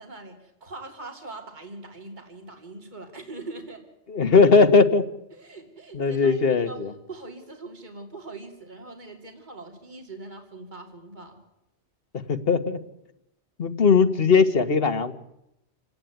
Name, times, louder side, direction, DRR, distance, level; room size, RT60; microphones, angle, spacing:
voice 1, 0.0-3.8 5.3-6.8 7.1-11.4, right 2 dB, 40° right, 4 dB, 3.1 m, -42 dB
voice 2, 4.1-5.0 5.9-6.9 12.3-12.8 13.6-15.1, left 4 dB, 55° left, 11 dB, 1.7 m, -19 dB
28.5 x 17.5 x 9.3 m, 0.86 s
omnidirectional pair, 1.2 m